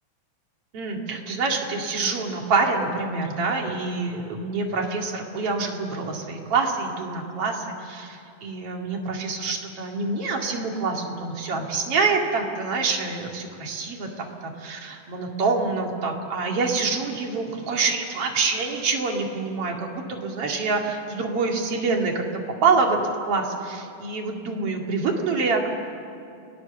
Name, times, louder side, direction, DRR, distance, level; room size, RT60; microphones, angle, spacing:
voice 1, 0.7-22.2 22.6-23.0 23.3-25.7, right 4 dB, 45° right, 1 dB, 2.9 m, -26 dB
30.0 x 20.0 x 7.1 m, 2.5 s
omnidirectional pair, 4.1 m